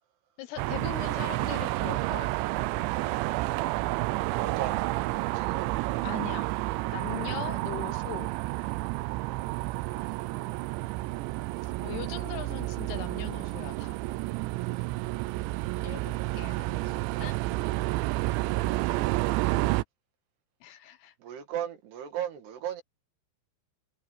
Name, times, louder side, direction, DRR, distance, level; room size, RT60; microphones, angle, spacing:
voice 1, 0.4-2.3 6.0-6.5 6.9-8.3 11.6-14.0 15.8-16.0 16.3-17.4 20.6-21.1, left 12 dB, 70° left, 3.0 m, -40 dB
sound 1, 0.6-19.8, right 19 dB, 85° right, 3.0 m, -30 dB
voice 2, 4.3-4.9 5.3-5.7 21.2-22.8, right 10 dB, 65° right, 3.9 m, -36 dB
omnidirectional pair, 5.2 m